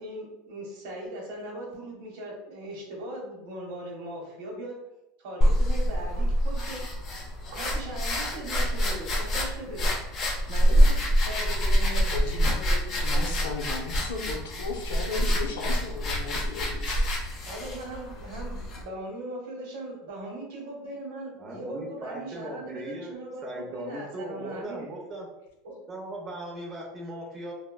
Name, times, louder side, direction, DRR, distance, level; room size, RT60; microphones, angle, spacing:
voice 1, 0.0-4.8 5.2-6.9 7.5-9.9 10.5-12.1 12.5-13.4 17.4-24.9 25.6-25.8, right 1 dB, 65° right, -1 dB, 1.0 m, -39 dB
sound 1, 5.4-18.8, equal, 25° left, 0.5 m, -26 dB
voice 2, 11.9-12.5 13.0-17.2, left 4 dB, 90° left, 2 dB, 0.6 m, -36 dB
voice 3, 21.4-23.1 23.4-25.3 25.9-27.5, right 1 dB, 20° right, -1 dB, 0.6 m, -38 dB
3.5 x 2.1 x 2.2 m, 0.89 s
supercardioid pair, 170°, 0 cm